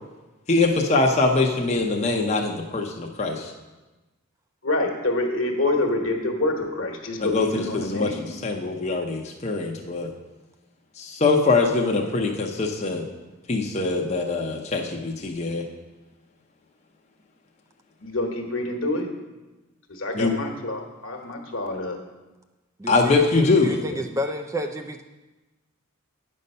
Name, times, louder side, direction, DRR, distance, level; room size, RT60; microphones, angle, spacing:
voice 1, 0.5-3.5 7.2-10.1 11.0-13.1 13.5-15.6 20.1-20.3 22.9-23.7, left 3 dB, 30° left, 0 dB, 0.6 m, -23 dB
voice 2, 4.6-8.2 18.0-19.1 19.9-22.0 23.1-23.2 23.9-24.0, left 2 dB, 65° left, 3 dB, 1.3 m, -27 dB
voice 3, 22.8-25.0, equal, 15° right, 4 dB, 0.3 m, -30 dB
9.3 x 5.4 x 5.4 m, 1.1 s
head